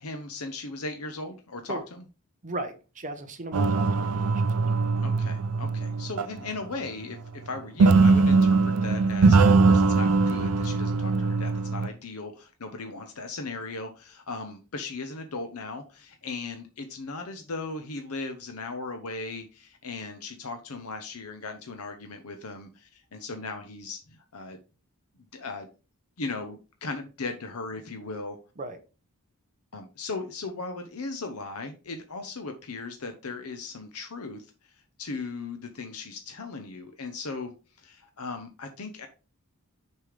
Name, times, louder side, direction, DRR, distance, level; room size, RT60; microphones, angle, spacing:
voice 1, 0.0-2.0 5.0-7.2 7.4-24.6 25.3-25.7 26.2-28.4 29.7-34.7 35.0-39.1, left 3 dB, 80° left, 6 dB, 0.9 m, -37 dB
voice 2, 2.4-4.7 28.6-28.8, right 2 dB, 35° right, 5 dB, 0.9 m, -37 dB
sound 1, 3.5-6.6 7.8-11.9, right 4 dB, 85° right, 0.6 m, -21 dB
6.8 x 5.5 x 3.3 m, 0.32 s
head